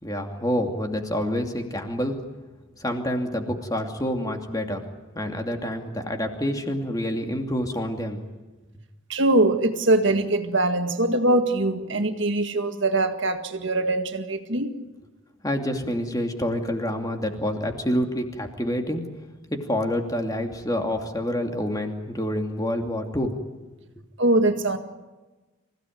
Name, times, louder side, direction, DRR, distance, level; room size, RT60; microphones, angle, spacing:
voice 1, 0.0-2.2 2.8-4.8 5.1-8.2 15.4-19.1 19.5-23.3, equal, 15° left, 2.6 m, -27 dB
voice 2, 9.1-14.7 24.2-24.8, right 2 dB, 60° right, 1.9 m, -22 dB
26.5 x 16.5 x 9.4 m
head